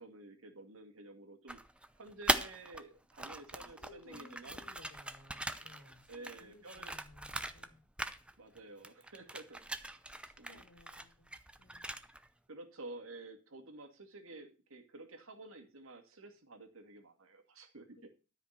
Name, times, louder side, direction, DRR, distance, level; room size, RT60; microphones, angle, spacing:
voice 1, 0.0-1.6 1.9-4.6 6.1-6.9 8.4-10.0 10.4-10.6 12.5-18.1, right 2 dB, 70° right, 5 dB, 2.3 m, -51 dB
sound 1, 1.5-2.8 3.1-7.7 8.0-8.6 8.8-12.3, right 1 dB, 5° right, 0.7 m, -40 dB
voice 2, 3.6-7.8 9.9-11.3 11.6-11.8, left 2 dB, 90° left, 3 dB, 2.5 m, -59 dB
13.0 x 5.3 x 6.6 m, 0.34 s
head